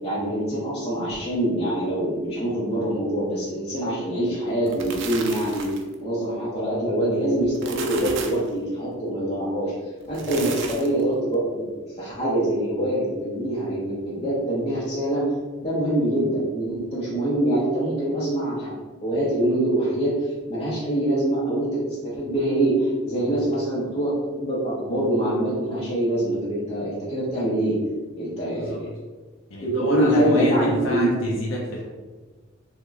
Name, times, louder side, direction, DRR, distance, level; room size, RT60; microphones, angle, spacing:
voice 1, 0.0-5.7 6.0-11.7 12.0-15.3 15.6-18.8 19.0-27.8 28.2-28.9 29.6-31.1, right 1 dB, 30° left, -9 dB, 0.6 m, -24 dB
sound 1, 4.5-5.9 7.4-8.5 10.0-11.0, right 5 dB, 60° right, 0.4 m, -35 dB
voice 2, 28.5-28.8 29.5-31.8, left 1 dB, 75° left, -3 dB, 0.5 m, -29 dB
2.9 x 2.2 x 3.4 m, 1.3 s
head